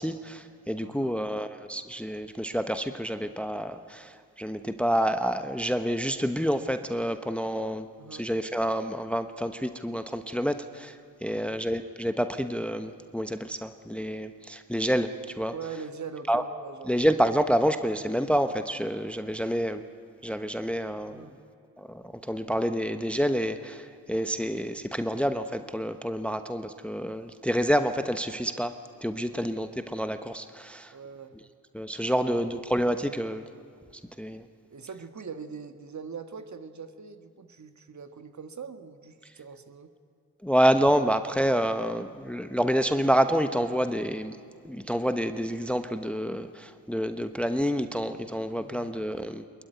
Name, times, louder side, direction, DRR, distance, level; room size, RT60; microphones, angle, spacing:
voice 1, 0.0-11.0 11.2-15.5 16.3-16.4 16.9-19.8 20.2-21.3 21.8-28.8 29.0-30.9 31.7-33.4 34.2-34.4 40.4-44.4 44.6-49.4, equal, 5° left, 9 dB, 1.1 m, -28 dB
voice 2, 15.5-17.1 21.0-21.3 29.3-29.6 30.9-31.3 32.1-32.7 34.7-39.9 48.6-48.9, right 5 dB, 40° right, 9 dB, 1.7 m, -42 dB
22.0 x 21.0 x 9.5 m, 2.3 s
hypercardioid pair, 40°, 45 cm